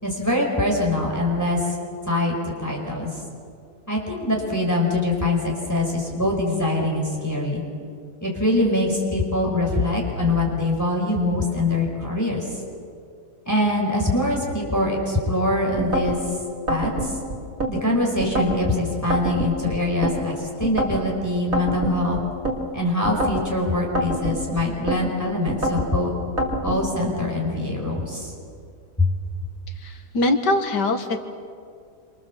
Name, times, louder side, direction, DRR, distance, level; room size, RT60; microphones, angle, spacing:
voice 1, 0.0-1.7 2.1-3.1 3.9-7.6 8.2-12.4 13.4-16.2 16.7-17.2 17.7-22.2 22.7-26.1 26.6-28.3 29.0-29.1, left 1 dB, 10° left, -1 dB, 5.0 m, -23 dB
sound 1, 15.8-16.2 16.7-17.7 18.2-18.6 19.1-20.2 20.6-21.0 21.5-22.6 23.0-23.5 23.9-25.0 25.5-25.9 26.4-26.8, right 1 dB, 50° right, 3.7 m, -25 dB
voice 2, 29.8-31.2, left 2 dB, 75° left, 6 dB, 2.2 m, -22 dB
27.5 x 26.0 x 7.4 m, 2.3 s
omnidirectional pair, 1.8 m